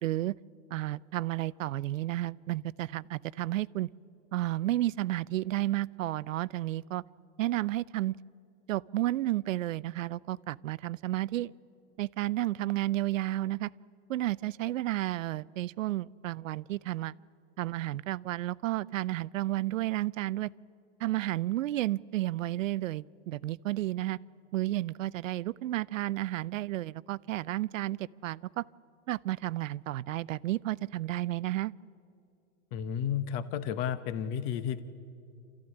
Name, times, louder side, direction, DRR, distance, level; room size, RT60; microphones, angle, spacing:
voice 1, 0.0-0.3 0.7-3.9 4.3-7.0 7.4-8.1 8.7-11.5 12.0-13.7 14.1-17.2 17.6-20.5 21.0-24.2 24.5-28.6 29.1-31.7, right 15 dB, 80° right, 21 dB, 0.6 m, -32 dB
voice 2, 32.7-34.8, left 9 dB, 30° left, 13 dB, 0.9 m, -32 dB
28.0 x 14.0 x 9.9 m, 2.5 s
supercardioid pair, 155°, 38 cm